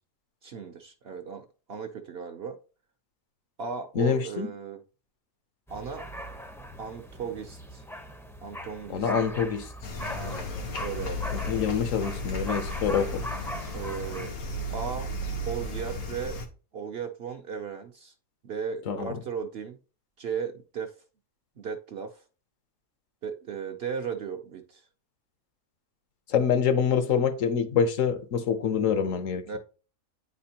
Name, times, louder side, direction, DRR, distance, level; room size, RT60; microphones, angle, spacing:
voice 1, 0.4-2.6 3.6-4.8 5.7-6.1 6.8-7.8 8.4-9.1 10.1-10.5 10.8-11.6 13.7-14.3 14.7-15.1 15.5-16.4 16.7-18.1 18.4-19.8 20.2-20.9 21.6-22.2 23.2-24.8 29.5-29.6, right 6 dB, 55° right, 0.7 m, -36 dB
voice 2, 3.9-4.5 8.9-9.7 11.3-13.3 18.9-19.2 26.3-29.4, left 7 dB, 70° left, 1.1 m, -26 dB
sound 1, 5.7-14.3, equal, 5° left, 0.4 m, -40 dB
sound 2, 9.8-16.4, left 1 dB, 85° left, 1.5 m, -34 dB
9.1 x 4.2 x 2.8 m
omnidirectional pair, 1.5 m